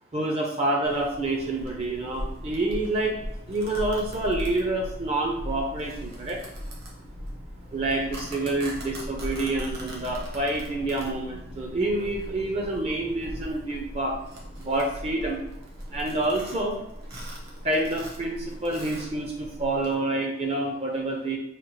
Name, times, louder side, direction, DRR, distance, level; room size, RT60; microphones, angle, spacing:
voice 1, 0.1-3.2 3.5-6.4 7.7-14.1 14.6-15.4 15.9-16.8 17.6-21.4, right 2 dB, 35° right, 0 dB, 0.5 m, -27 dB
Domestic sounds home sounds, 0.8-19.9, equal, 55° right, 1.1 m, -39 dB
4.9 x 2.4 x 3.0 m, 0.88 s
head